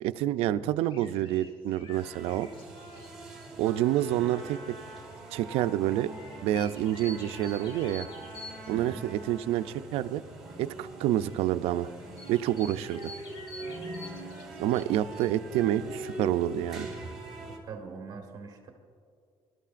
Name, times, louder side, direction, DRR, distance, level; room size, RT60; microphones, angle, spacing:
voice 1, 0.0-2.5 3.6-4.6 5.3-6.1 6.4-8.1 8.7-10.2 10.6-11.9 12.3-13.1 14.6-16.9, right 12 dB, 80° right, 11 dB, 0.4 m, -28 dB
sound 1, 0.8-4.0 4.3-4.4 6.1-8.8 9.9-10.0 11.1-11.4 12.1-15.3, left 2 dB, 60° left, 2.0 m, -48 dB
sound 2, 1.9-17.6, right 2 dB, 5° right, 2.0 m, -43 dB
Trumpet, 3.6-9.9, right 1 dB, 10° left, 1.5 m, -50 dB
voice 2, 8.7-9.0 12.7-12.8 17.7-18.7, right 5 dB, 40° right, 3 dB, 1.3 m, -42 dB
25.5 x 12.5 x 2.5 m, 2.3 s
cardioid pair, 170°, 10 cm